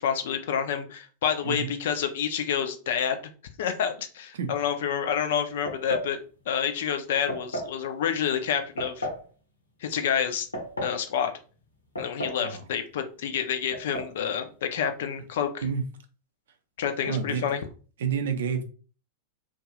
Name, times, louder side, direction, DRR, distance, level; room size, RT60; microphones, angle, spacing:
voice 1, 0.0-3.2 3.6-6.2 6.5-9.1 9.8-10.5 10.8-11.3 12.0-15.6 16.8-17.6, left 8 dB, 55° left, 7 dB, 0.4 m, -28 dB
sound 1, 5.7-6.1 7.3-7.8 8.8-9.3 10.3-11.0 12.0-12.5 12.7-12.8 13.7-14.1, equal, 80° left, 0.8 m, -33 dB
voice 2, 17.0-17.4 18.0-18.6, right 6 dB, 60° right, 7 dB, 0.5 m, -29 dB
2.6 x 2.4 x 2.9 m, 0.38 s
figure-of-eight pair, 90°, 0 cm